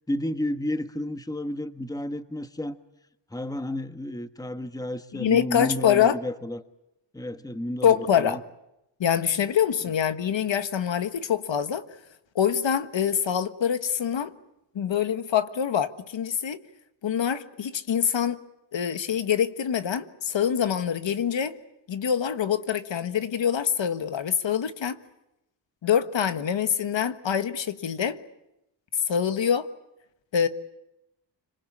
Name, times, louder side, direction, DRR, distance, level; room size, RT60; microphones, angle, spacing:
voice 1, 0.1-2.8 3.3-6.6 7.1-8.4, left 1 dB, 10° left, 1.3 m, -31 dB
voice 2, 5.1-6.2 7.8-8.4 9.0-11.8 12.3-14.3 14.7-16.6 17.0-18.4 18.7-21.6 21.9-25.0 25.8-28.2 29.1-29.7 30.3-30.5, left 8 dB, 65° left, 1.6 m, -25 dB
26.0 x 26.0 x 8.5 m
cardioid pair, 95°, 47 cm